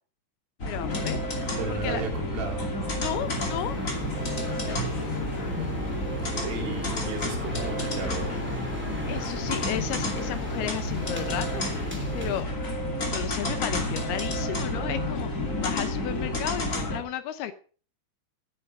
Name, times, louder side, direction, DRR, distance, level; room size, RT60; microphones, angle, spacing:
voice 1, 0.6-1.2 1.7-2.0 3.0-3.7 9.1-11.6 12.1-12.5 13.1-15.3 15.6-17.5, left 11 dB, 75° left, 11 dB, 2.4 m, -33 dB
sound 1, 0.6-17.0, left 1 dB, 25° left, 1.8 m, -30 dB
voice 2, 1.6-2.6 6.2-8.4, right 4 dB, 55° right, 2 dB, 4.7 m, -35 dB
sound 2, 3.0-12.4, equal, 5° right, 1.0 m, -37 dB
15.0 x 8.9 x 5.3 m, 0.41 s
omnidirectional pair, 5.4 m